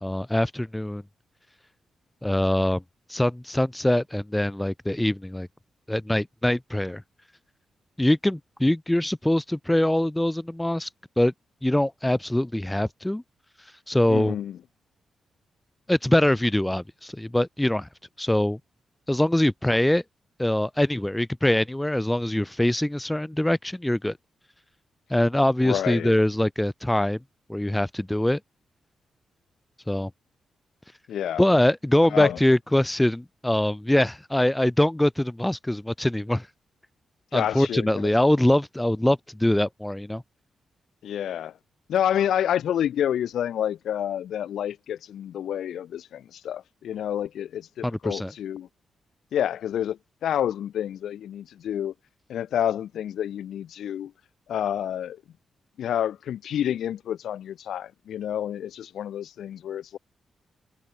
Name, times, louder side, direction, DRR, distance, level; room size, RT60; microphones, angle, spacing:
voice 1, 0.0-1.0 2.2-2.8 3.1-5.5 5.9-7.0 8.0-10.9 11.2-11.3 11.6-13.2 13.9-14.4 15.9-17.9 18.2-18.6 19.1-20.0 20.4-24.2 25.1-27.2 27.5-28.4 29.9-30.1 31.4-36.5 37.3-40.2 47.8-48.3, left 1 dB, 10° left, 0.8 m, -23 dB
voice 2, 14.1-14.6 25.6-26.1 31.1-31.4 32.1-32.4 37.3-38.1 41.0-41.5 41.9-48.7 49.3-51.9 52.3-54.1 54.5-55.2 55.8-60.0, left 10 dB, 85° left, 3.5 m, -29 dB
cardioid pair, 100°, 0 cm